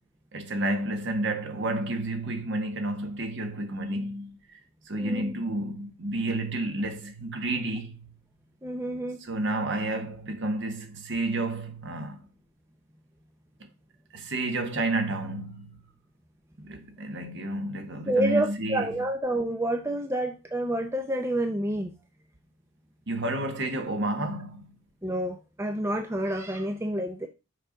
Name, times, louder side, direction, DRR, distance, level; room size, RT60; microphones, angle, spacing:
voice 1, 0.3-4.6 4.9-8.1 9.2-12.2 14.1-15.8 16.6-18.9 23.1-24.7, right 2 dB, 55° right, 1.3 m, -30 dB
voice 2, 5.0-5.3 8.6-9.2 18.1-21.9 25.0-27.3, right 1 dB, 10° right, 0.6 m, -28 dB
6.6 x 5.2 x 3.9 m
head